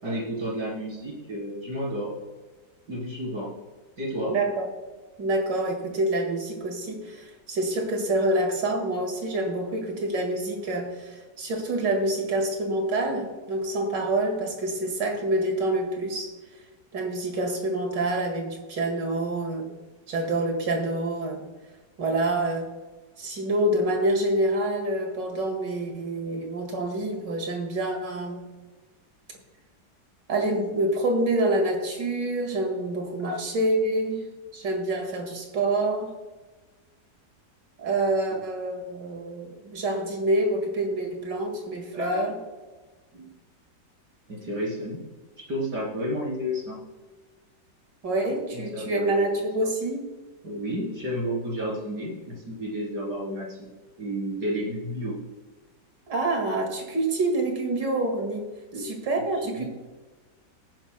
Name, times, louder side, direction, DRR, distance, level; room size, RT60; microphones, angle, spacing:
voice 1, 0.0-2.1 2.9-3.5 4.0-4.4 33.2-33.4 41.9-42.3 43.1-43.3 44.3-45.0 45.5-46.8 48.5-49.1 50.4-53.7 54.0-55.2 58.7-58.9 59.4-59.7, equal, 65° right, -4 dB, 4.1 m, -31 dB
voice 2, 4.3-4.7 5.2-16.3 16.9-19.7 20.1-21.4 22.0-22.6 23.2-28.4 30.3-34.3 34.5-36.1 37.8-42.3 48.0-50.1 56.1-58.5 58.8-59.7, right 2 dB, 80° right, 3 dB, 2.6 m, -27 dB
18.5 x 9.7 x 2.2 m, 1.3 s
omnidirectional pair, 1.9 m